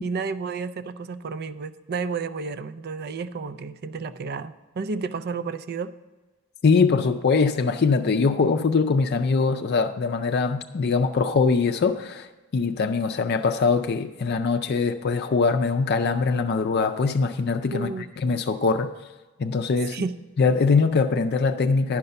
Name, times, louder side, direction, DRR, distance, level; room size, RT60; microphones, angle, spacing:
voice 1, 0.0-5.9 17.7-18.4 19.9-20.1, right 4 dB, 50° right, 0.5 m, -31 dB
voice 2, 6.6-12.3 12.5-18.9 19.4-20.0 20.4-22.0, left 4 dB, 55° left, 0.4 m, -22 dB
11.0 x 5.3 x 6.8 m
head